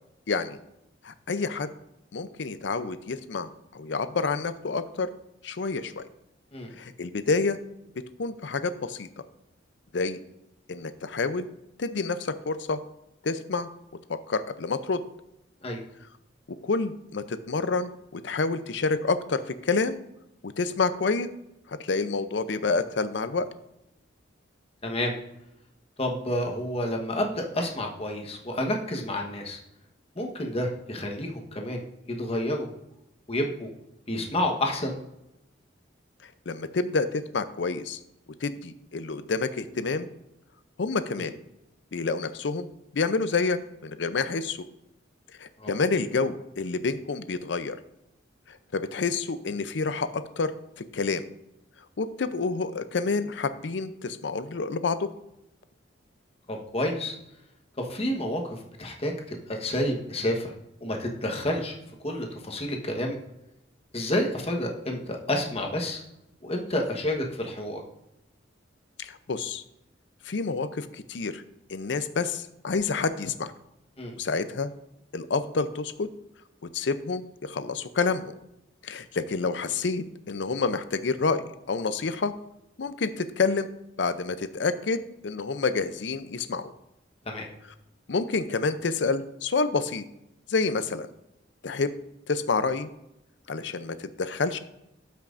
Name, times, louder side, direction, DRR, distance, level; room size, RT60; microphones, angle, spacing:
voice 1, 0.3-0.6 1.0-1.7 2.1-5.1 5.4-6.1 6.8-7.6 8.2-9.1 9.9-10.2 10.7-11.5 11.8-12.8 13.2-13.7 14.1-15.0 16.6-20.0 20.4-21.3 21.7-23.5 36.2-38.0 38.4-40.1 40.8-41.3 41.9-42.7 42.9-44.6 45.4-47.8 48.5-51.2 52.0-55.1 69.0-69.6 70.2-71.4 71.7-73.5 74.2-74.7 75.1-76.1 76.7-78.3 78.8-82.3 82.8-83.7 84.0-86.7 88.1-90.0 90.5-91.1 91.6-91.9 92.3-92.9 93.5-94.6, left 4 dB, 65° left, 12 dB, 0.6 m, -28 dB
voice 2, 24.8-25.1 26.0-29.6 30.1-32.7 33.3-33.7 34.1-35.0 41.2-41.3 45.6-45.7 56.5-57.1 57.8-60.5 60.8-61.7 62.0-63.2 63.9-66.0 66.4-67.8 74.0-74.1 87.3-87.5, left 1 dB, 30° left, 1 dB, 1.2 m, -29 dB
13.0 x 5.8 x 2.6 m, 0.85 s
head